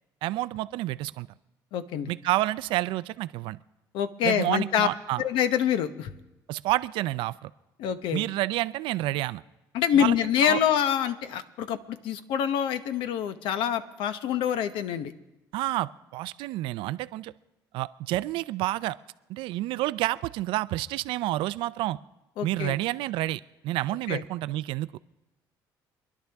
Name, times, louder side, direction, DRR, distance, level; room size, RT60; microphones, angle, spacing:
voice 1, 0.2-1.3 2.1-3.6 4.2-5.2 6.5-7.5 8.1-9.4 9.9-10.1 10.4-10.6 15.5-17.3 17.7-19.0 19.3-22.0 22.4-24.9, right 16 dB, 80° right, 16 dB, 0.4 m, -29 dB
voice 2, 1.7-2.1 3.9-4.9 5.2-6.1 7.8-8.2 9.7-15.1 22.4-22.8 24.1-24.2, left 9 dB, 75° left, 11 dB, 0.9 m, -26 dB
26.5 x 11.0 x 3.5 m, 1.0 s
supercardioid pair, 90°, 9 cm